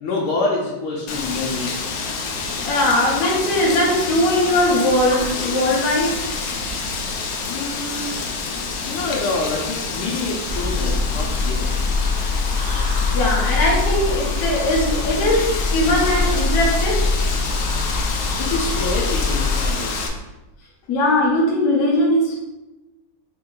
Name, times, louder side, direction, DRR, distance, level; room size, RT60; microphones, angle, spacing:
voice 1, 0.0-1.8 7.4-8.2 8.7-11.8 18.4-20.0, left 3 dB, 85° left, -3 dB, 1.6 m, -26 dB
Wind, 1.1-20.1, left 4 dB, 70° left, 0.9 m, -28 dB
voice 2, 2.6-6.2 13.1-17.1 20.9-22.4, left 1 dB, 55° left, -4 dB, 1.3 m, -19 dB
sound 1, 10.5-19.7, left 3 dB, 65° right, 0.5 m, -23 dB
4.4 x 2.8 x 3.8 m, 1.0 s
omnidirectional pair, 2.2 m